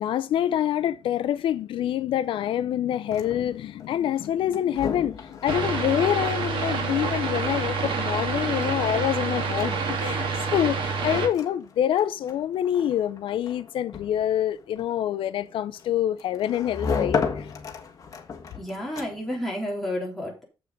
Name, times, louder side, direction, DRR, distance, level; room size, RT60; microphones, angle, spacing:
voice 1, 0.0-17.5, left 11 dB, 80° left, 0.5 m, -26 dB
sound 1, 2.9-19.4, left 5 dB, 40° left, 1.6 m, -36 dB
sound 2, 5.5-11.3, right 4 dB, 80° right, 2.8 m, -27 dB
voice 2, 18.5-20.4, left 1 dB, 5° left, 3.6 m, -31 dB
7.8 x 6.8 x 5.1 m
wide cardioid pair, 160°, 9 cm